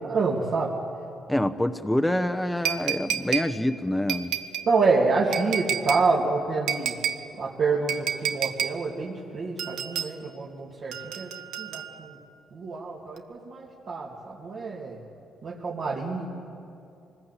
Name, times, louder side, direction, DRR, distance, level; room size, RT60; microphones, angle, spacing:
voice 1, 0.1-0.7 4.7-6.9 7.4-11.3 11.6-12.2 12.5-15.0 15.4-16.3, right 4 dB, 60° right, -6 dB, 2.9 m, -27 dB
voice 2, 1.3-4.4, left 1 dB, 5° left, 9 dB, 1.0 m, -26 dB
sound 1, 2.7-3.5 4.1-4.7 5.3-6.1 6.7-7.2 7.9-8.8 9.6-10.1 10.9-12.1 13.2-13.3, right 9 dB, 85° right, 0.9 m, -30 dB
24.5 x 20.0 x 8.4 m, 2.6 s
cardioid pair, 90°, 0 cm